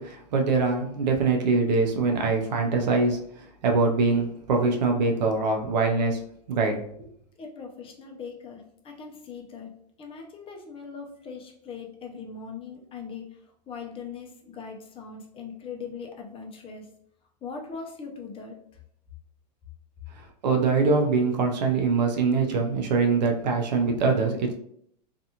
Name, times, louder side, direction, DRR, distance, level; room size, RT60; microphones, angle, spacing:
voice 1, 0.0-3.2 3.6-6.2 6.5-7.1 20.4-24.5, right 4 dB, 80° right, 3 dB, 0.6 m, -23 dB
voice 2, 7.4-9.7 10.0-16.9 17.4-18.6, left 5 dB, 25° left, 1 dB, 0.6 m, -40 dB
2.5 x 2.4 x 2.8 m, 0.70 s
hypercardioid pair, 105°, 21 cm